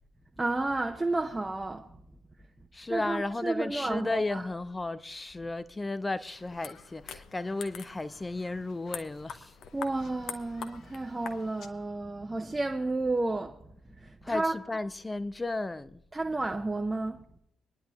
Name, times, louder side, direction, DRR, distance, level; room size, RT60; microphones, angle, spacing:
voice 1, 0.4-2.0 2.9-4.5 9.7-13.6 14.0-14.7 16.1-17.2, right 2 dB, 20° right, 0.9 m, -31 dB
voice 2, 2.7-9.5 14.2-16.0, left 2 dB, 20° left, 0.8 m, -34 dB
sound 1, 6.3-11.7, left 7 dB, 55° left, 1.0 m, -45 dB
25.0 x 10.5 x 2.5 m
figure-of-eight pair, 45°, 0 cm